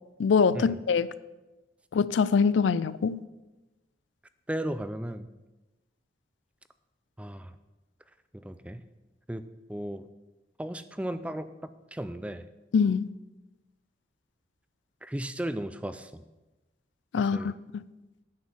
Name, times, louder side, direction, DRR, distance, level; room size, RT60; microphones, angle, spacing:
voice 1, 0.2-1.1 1.9-3.2 12.7-13.1 17.1-17.8, left 5 dB, 80° left, 0.4 m, -24 dB
voice 2, 4.5-5.3 7.2-7.6 8.3-8.8 9.3-9.4 9.7-10.1 10.6-11.5 11.9-12.5 15.0-16.2 17.2-17.5, right 1 dB, 5° right, 0.4 m, -35 dB
9.5 x 6.3 x 7.1 m
head